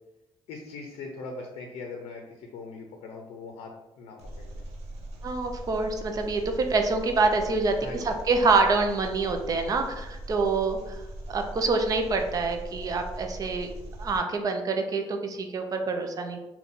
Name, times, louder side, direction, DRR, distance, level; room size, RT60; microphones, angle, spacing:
voice 1, 0.5-4.7 7.8-8.2, left 3 dB, 85° left, 2 dB, 0.6 m, -41 dB
Engine, 4.2-14.2, right 1 dB, 85° right, 0.7 m, -40 dB
voice 2, 5.2-7.7 8.0-11.0 11.3-13.7 14.0-16.4, right 3 dB, 35° right, 5 dB, 0.5 m, -26 dB
3.9 x 2.3 x 3.6 m, 1.0 s
cardioid pair, 150°, 10 cm